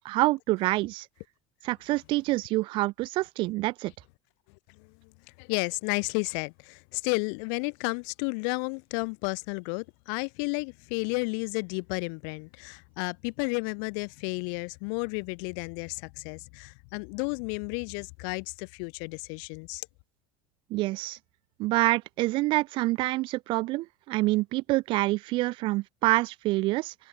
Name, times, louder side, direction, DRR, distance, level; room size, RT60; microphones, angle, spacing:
voice 1, 0.0-1.1 1.6-3.9 20.7-21.2 21.6-26.9, right 20 dB, 45° right, 0.5 m, -27 dB
voice 2, 5.4-19.9, left 40 dB or more, 60° left, 0.8 m, -32 dB
cardioid pair, 155°, 12 cm